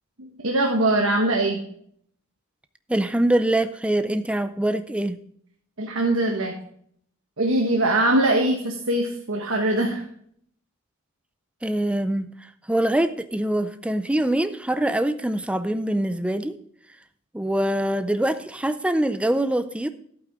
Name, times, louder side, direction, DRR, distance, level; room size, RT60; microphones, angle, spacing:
voice 1, 0.2-1.6 5.8-6.5 7.4-10.0, right 1 dB, 65° right, 1 dB, 1.4 m, -22 dB
voice 2, 2.9-5.2 11.6-12.3 12.7-16.6 17.3-19.9, right 1 dB, 5° right, 11 dB, 0.4 m, -24 dB
11.5 x 8.7 x 3.6 m, 0.65 s
head